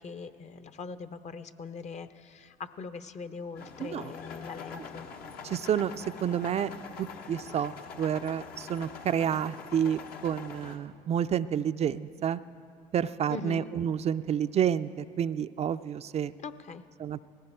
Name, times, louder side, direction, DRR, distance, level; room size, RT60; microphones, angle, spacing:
voice 1, 0.0-5.1 13.3-13.7 16.4-16.8, left 5 dB, 45° left, 11 dB, 0.8 m, -41 dB
sound 1, 3.6-10.8, left 5 dB, 65° left, 1.1 m, -44 dB
voice 2, 3.8-4.1 5.4-6.7 7.0-12.4 12.9-16.3 17.0-17.3, right 9 dB, 40° right, 12 dB, 0.4 m, -29 dB
18.0 x 15.5 x 4.5 m, 2.3 s
supercardioid pair, 75°, 17 cm